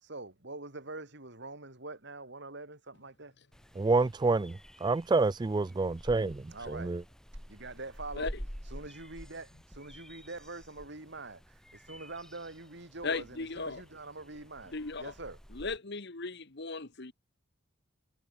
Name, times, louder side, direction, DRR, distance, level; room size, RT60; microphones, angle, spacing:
voice 1, 0.0-3.3 6.5-6.9 7.5-8.3 8.7-15.4, right 2 dB, 55° right, 3.5 m, -44 dB
sound 1, 3.5-15.8, equal, 5° left, 6.7 m, -49 dB
voice 2, 3.8-4.5 4.8-6.4 6.7-7.0, right 3 dB, 20° right, 0.3 m, -27 dB
voice 3, 13.0-13.8 14.7-15.1 15.5-17.1, left 3 dB, 55° left, 1.6 m, -37 dB
head